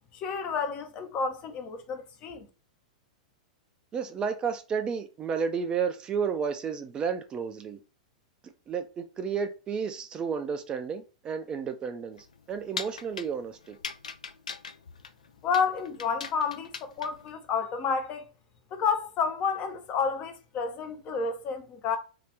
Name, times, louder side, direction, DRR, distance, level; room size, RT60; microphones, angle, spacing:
voice 1, 0.1-2.5 15.4-18.3 18.7-22.0, left 5 dB, 35° left, 0.6 m, -30 dB
voice 2, 3.9-7.8 8.7-13.8, right 6 dB, 25° right, 0.4 m, -32 dB
sound 1, 12.1-17.3, left 5 dB, 75° left, 0.4 m, -41 dB
2.8 x 2.4 x 3.2 m
figure-of-eight pair, 100°, 4 cm